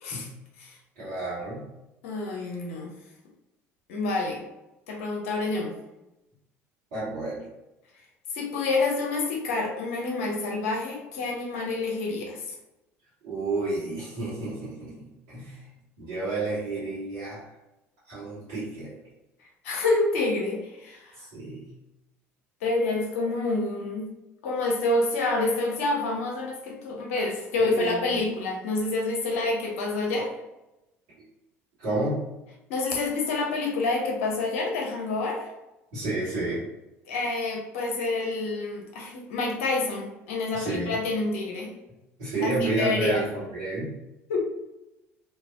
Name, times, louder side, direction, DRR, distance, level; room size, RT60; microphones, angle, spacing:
voice 1, 0.9-1.6 6.9-7.4 13.2-15.6 16.0-17.4 18.1-18.9 21.2-21.7 27.6-28.0 31.8-32.2 35.9-36.6 40.5-40.9 42.2-43.9, right 2 dB, 60° right, -13 dB, 1.4 m, -30 dB
voice 2, 2.0-2.9 3.9-4.4 4.9-5.7 8.3-12.4 19.6-21.2 22.6-24.1 24.4-30.3 32.7-35.5 37.1-41.7 42.4-43.2 44.3-44.5, left 3 dB, 70° left, 0 dB, 0.7 m, -28 dB
3.2 x 2.7 x 2.3 m, 0.95 s
figure-of-eight pair, 60°, 8 cm